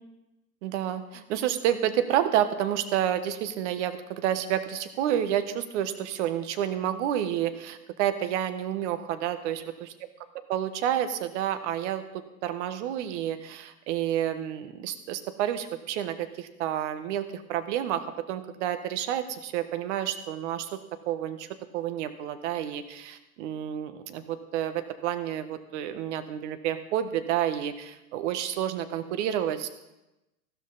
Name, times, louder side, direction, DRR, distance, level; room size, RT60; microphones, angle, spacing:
voice 1, 0.6-9.6 10.5-12.0 12.4-20.8 21.1-21.5 21.7-29.7, right 11 dB, 50° right, 10 dB, 1.4 m, -29 dB
14.5 x 12.5 x 4.1 m, 0.97 s
hypercardioid pair, 105°, 45 cm